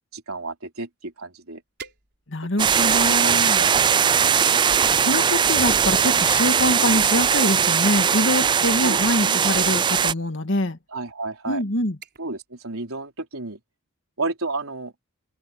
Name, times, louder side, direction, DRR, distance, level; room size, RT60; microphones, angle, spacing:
voice 1, 0.1-1.6 2.6-2.7 3.2-4.0 8.8-9.0 9.2-9.4 10.9-11.6 12.2-13.6 14.2-14.9, right 3 dB, 80° right, 3.7 m, -32 dB
sound 1, 1.1-1.2 1.8-2.6 3.2-4.0 5.0-7.9 9.0-9.2 9.5-9.9 10.7-10.9 11.3-11.6 12.0-12.4 12.7-13.1 13.5-13.6, right 5 dB, 55° right, 4.4 m, -46 dB
voice 2, 2.3-3.6 5.0-10.8 11.5-12.0, left 1 dB, 60° left, 1.9 m, -24 dB
sound 2, 2.6-10.1, right 7 dB, 20° right, 0.3 m, -19 dB
head